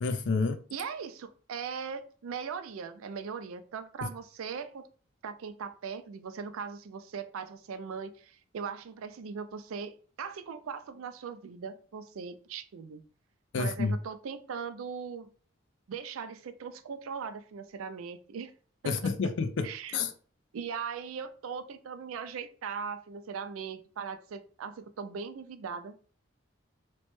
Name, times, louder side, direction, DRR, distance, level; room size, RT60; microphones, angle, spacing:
voice 1, 0.0-0.6 4.0-4.1 13.5-13.9 18.8-19.7 19.9-20.1, left 4 dB, 60° left, 0.4 m, -29 dB
voice 2, 0.7-4.9 5.2-13.0 13.6-15.3 15.9-18.5 18.8-19.3 19.6-20.0 20.5-25.9, right 6 dB, 90° right, 0.4 m, -39 dB
3.0 x 2.1 x 3.0 m
head